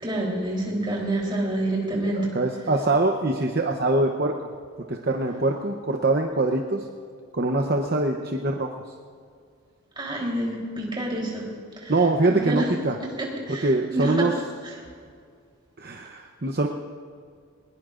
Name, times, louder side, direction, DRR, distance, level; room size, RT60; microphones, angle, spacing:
voice 1, 0.0-2.3 10.0-11.5 11.8-11.9 12.3-12.7 13.2-14.3, right 1 dB, 20° right, -3 dB, 3.6 m, -27 dB
voice 2, 1.9-4.3 4.9-6.8 7.3-8.7 11.9-13.0 13.5-14.3 15.8-16.7, right 2 dB, 45° right, 2 dB, 0.8 m, -23 dB
22.0 x 20.5 x 2.6 m, 2.1 s
head